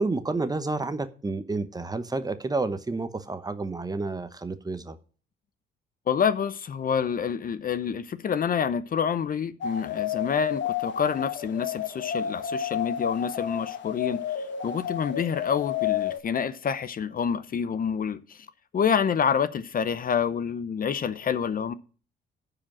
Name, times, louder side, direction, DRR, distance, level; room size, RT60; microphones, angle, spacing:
voice 1, 0.0-5.0, right 3 dB, 20° right, 0.9 m, -30 dB
voice 2, 6.1-18.5 18.7-21.7, left 7 dB, 45° left, 0.7 m, -27 dB
sound 1, 9.6-16.2, left 9 dB, 65° left, 1.1 m, -31 dB
10.5 x 5.0 x 7.4 m
cardioid pair, 90°, 20 cm